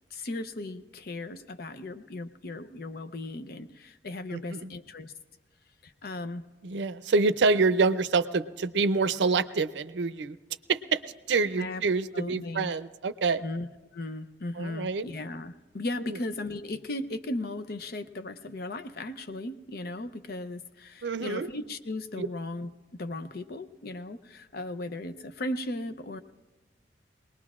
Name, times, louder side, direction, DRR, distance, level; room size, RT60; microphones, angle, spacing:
voice 1, 0.1-5.1 5.8-6.4 11.6-11.8 12.1-12.7 13.4-13.7 13.9-26.2, left 2 dB, 55° left, 11 dB, 0.6 m, -36 dB
voice 2, 4.3-4.7 6.6-10.4 10.7-11.0 11.3-13.4 14.6-15.1 16.1-16.2 21.0-21.5 22.2-22.3, right 4 dB, 80° right, 14 dB, 0.5 m, -26 dB
23.0 x 19.5 x 2.4 m, 1.2 s
head